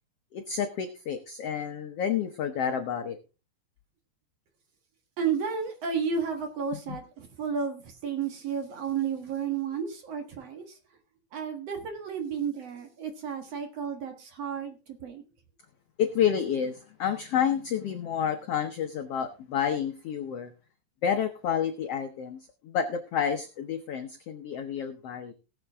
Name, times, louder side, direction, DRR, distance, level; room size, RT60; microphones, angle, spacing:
voice 1, 0.3-3.2 16.0-20.5 21.0-22.4 22.6-25.3, left 8 dB, 80° left, 7 dB, 1.3 m, -29 dB
voice 2, 5.2-10.8 11.3-15.2, right 6 dB, 55° right, 6 dB, 2.3 m, -32 dB
19.0 x 7.3 x 3.5 m, 0.31 s
omnidirectional pair, 4.1 m